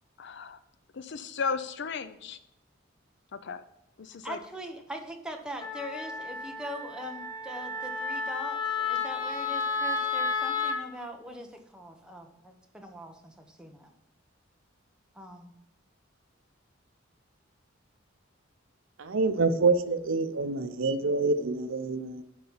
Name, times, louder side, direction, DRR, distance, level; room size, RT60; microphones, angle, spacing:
voice 1, 0.2-0.6 0.9-2.4 3.3-3.6 4.0-4.4, left 5 dB, 60° left, 12 dB, 0.6 m, -35 dB
voice 2, 4.2-13.9 15.1-15.5, equal, 5° right, 2 dB, 1.0 m, -42 dB
Wind instrument woodwind instrument, 5.6-10.8, left 4 dB, 25° left, 1.4 m, -32 dB
voice 3, 19.0-22.2, right 3 dB, 75° right, 10 dB, 0.7 m, -26 dB
11.5 x 4.1 x 5.7 m, 0.83 s
head